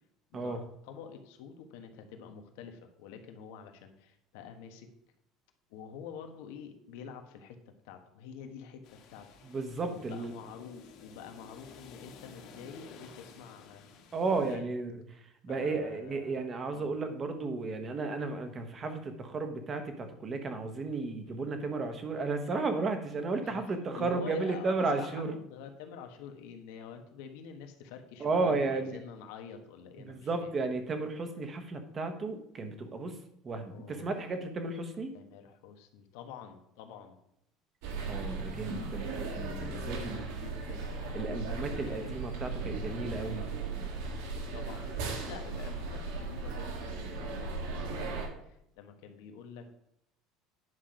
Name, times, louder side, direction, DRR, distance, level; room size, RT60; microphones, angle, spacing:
voice 1, 0.3-4.9 5.7-7.6 7.8-9.3 9.9-13.8 14.4-14.7 15.5-16.4 16.7-16.9 21.2-21.5 23.4-23.6 23.9-30.5 33.7-34.1 35.1-37.2 39.9-40.9 41.7-42.2 44.5-49.8, left 7 dB, 90° left, 5 dB, 1.4 m, -47 dB
sound 1, 8.8-14.6, left 5 dB, 50° left, 1.7 m, -54 dB
voice 2, 9.4-10.4 14.1-15.0 15.4-25.3 28.2-29.0 30.0-33.2 33.4-35.1 38.1-40.3 41.1-43.5, right 3 dB, 25° right, 7 dB, 1.1 m, -33 dB
sound 2, 37.8-48.3, right 3 dB, 90° right, 1.9 m, -37 dB
9.7 x 6.0 x 5.1 m, 0.76 s
cardioid pair, 170°, 0 cm